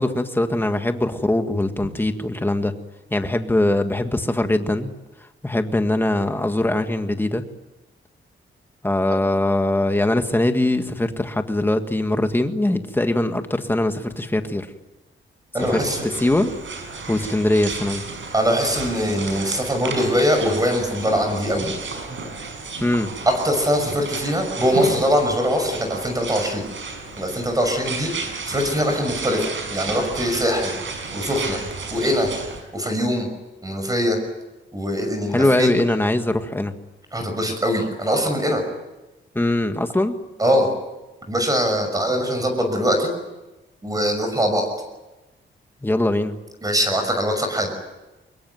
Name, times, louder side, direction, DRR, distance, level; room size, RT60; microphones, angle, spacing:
voice 1, 0.0-2.7 3.1-4.9 5.4-7.4 8.8-14.7 15.7-15.8 16.2-16.5 17.1-18.0 21.6-21.7 22.8-23.1 35.3-36.7 39.3-40.2 45.8-46.3, left 1 dB, 10° left, 7 dB, 1.8 m, -21 dB
voice 2, 15.5-16.1 18.3-21.7 23.3-26.6 27.2-28.1 28.5-30.7 31.1-31.6 31.9-32.3 32.7-33.3 33.6-34.2 34.7-35.7 37.1-38.6 40.4-40.7 41.3-43.1 43.8-44.7 46.6-47.7, equal, 15° right, 5 dB, 6.2 m, -22 dB
sound 1, 15.6-32.6, right 4 dB, 65° right, 6.1 m, -33 dB
24.5 x 22.0 x 9.4 m, 1.1 s
wide cardioid pair, 145°, 21 cm